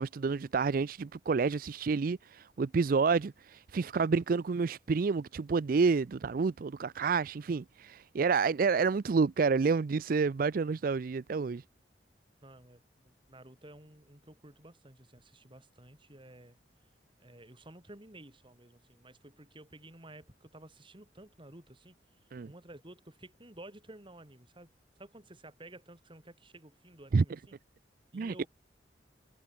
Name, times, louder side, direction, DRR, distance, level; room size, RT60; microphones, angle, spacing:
voice 1, 0.0-11.6 22.3-22.5 27.1-27.2 28.1-28.5, right 4 dB, 55° right, 0.4 m, -29 dB
voice 2, 12.4-16.6 17.2-22.0 22.4-24.7 25.0-27.5 28.1-28.5, right 1 dB, 30° right, 3.7 m, -53 dB
head